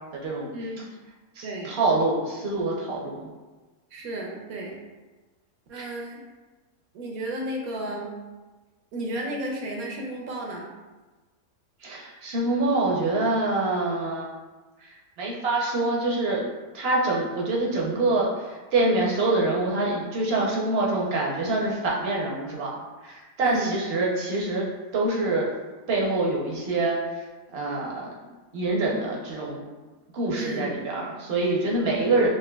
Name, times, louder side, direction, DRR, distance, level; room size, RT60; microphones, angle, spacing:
voice 1, 0.5-0.8 1.4-1.8 3.9-4.8 5.7-6.2 6.9-8.1 8.9-10.7 23.4-23.8 30.3-30.7, right 1 dB, 70° right, 0 dB, 1.1 m, -33 dB
voice 2, 1.4-3.3 5.7-5.9 11.8-14.3 14.8-16.5 16.7-25.5 25.9-27.2 27.5-28.1 28.5-29.6 30.1-32.3, right 2 dB, 50° right, -3 dB, 0.8 m, -25 dB
5.9 x 2.6 x 2.3 m, 1.2 s
omnidirectional pair, 1.7 m